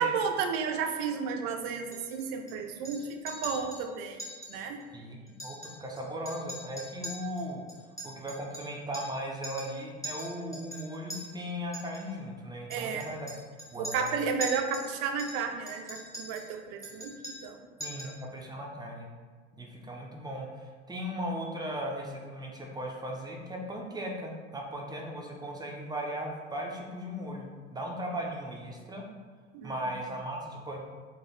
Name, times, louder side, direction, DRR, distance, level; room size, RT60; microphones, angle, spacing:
voice 1, 0.0-4.2 4.5-4.8 12.7-13.1 13.8-17.6 18.0-18.1 29.5-29.7, right 6 dB, 55° right, 5 dB, 0.5 m, -32 dB
Chink clink, 1.9-2.5 2.8-3.0 3.3-3.8 4.2-4.5 4.8-4.9 5.3-6.0 6.3-9.2 9.4-9.7 10.0-11.2 11.7-12.0 12.7-14.9 15.2-16.5 16.8-17.5 17.8-18.2, equal, 10° left, 1.2 m, -42 dB
voice 2, 4.9-7.6 8.0-13.3 13.7-14.1 17.8-19.1 19.5-29.0 29.6-30.8, equal, 10° right, 0 dB, 0.5 m, -37 dB
3.2 x 2.3 x 4.0 m, 1.5 s
figure-of-eight pair, 70°, 34 cm